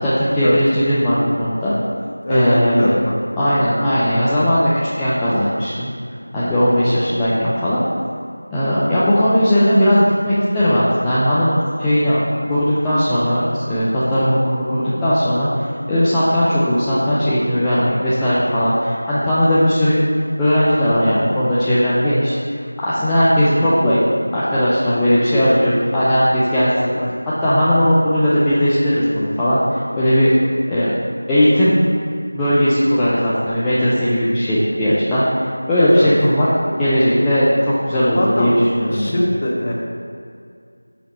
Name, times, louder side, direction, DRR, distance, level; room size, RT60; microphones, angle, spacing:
voice 1, 0.0-1.7 2.3-2.9 3.4-4.7 5.0-5.9 6.3-7.8 8.5-12.2 12.5-20.0 20.4-24.0 24.3-26.9 27.4-30.3 30.7-30.9 31.3-31.8 32.3-39.1, equal, 5° left, -12 dB, 0.4 m, -17 dB
voice 2, 2.2-3.1 26.9-27.1 35.8-36.1 38.1-38.6 38.9-39.7, left 1 dB, 25° left, -2 dB, 0.7 m, -20 dB
5.8 x 4.6 x 4.1 m, 2.3 s
figure-of-eight pair, 175°, 0 cm